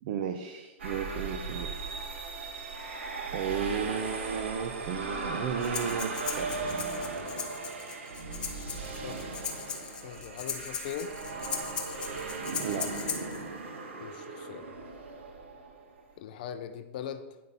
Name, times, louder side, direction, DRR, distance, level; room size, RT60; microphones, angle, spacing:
voice 1, 0.0-1.9 3.3-6.5 12.6-12.9, right 7 dB, 40° right, 7 dB, 0.7 m, -34 dB
sound 1, 0.8-16.0, right 3 dB, 70° right, 1.9 m, -37 dB
Breathing, 5.6-13.4, left 6 dB, 15° left, 0.8 m, -38 dB
voice 2, 9.0-9.5 10.0-11.1 14.0-14.7 16.2-17.4, left 8 dB, 40° left, 9 dB, 0.5 m, -40 dB
9.5 x 5.7 x 5.3 m, 1.1 s
hypercardioid pair, 165°, 7 cm